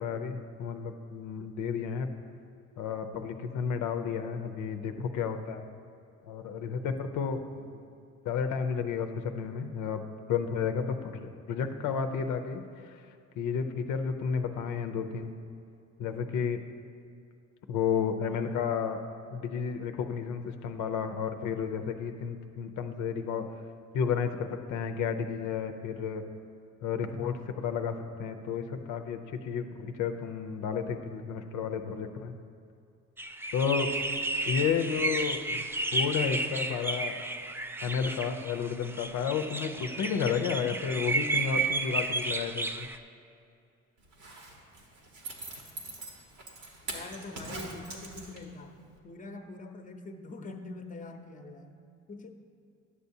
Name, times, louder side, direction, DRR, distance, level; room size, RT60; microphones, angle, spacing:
voice 1, 0.0-2.1 2.8-5.6 6.3-7.4 8.2-10.0 10.3-12.9 13.4-15.3 16.0-16.6 17.7-19.0 19.3-23.5 23.9-26.2 26.8-29.2 29.4-32.3 33.5-33.9 34.5-35.7 35.9-37.1 37.8-42.9, left 6 dB, 85° left, 6 dB, 0.6 m, -32 dB
sound 1, 33.2-43.0, right 2 dB, 10° right, 0.3 m, -32 dB
Zipper (clothing), 44.0-48.6 49.0-49.1, right 2 dB, 85° right, 1.4 m, -42 dB
voice 2, 46.9-52.3, left 2 dB, 25° left, 5 dB, 0.7 m, -44 dB
11.0 x 6.9 x 2.7 m, 2.5 s
cardioid pair, 90°, 30 cm